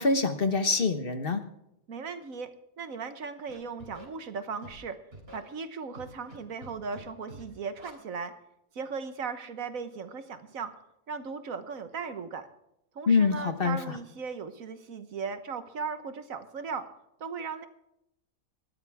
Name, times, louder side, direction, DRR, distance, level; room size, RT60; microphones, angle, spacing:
voice 1, 0.0-1.4 13.1-14.0, left 4 dB, 45° left, 8 dB, 1.4 m, -25 dB
voice 2, 1.9-2.5 2.8-5.0 5.3-8.3 8.7-10.7 11.1-12.5 12.9-16.9 17.2-17.7, right 5 dB, 75° right, 10 dB, 1.6 m, -37 dB
Scratching (performance technique), 3.5-4.1 4.6-4.8 5.1-5.4 5.9-6.4 6.6-7.0 7.3-7.4 7.8-7.9, right 2 dB, 45° right, 3.7 m, -47 dB
19.0 x 13.5 x 3.6 m, 0.81 s
omnidirectional pair, 1.5 m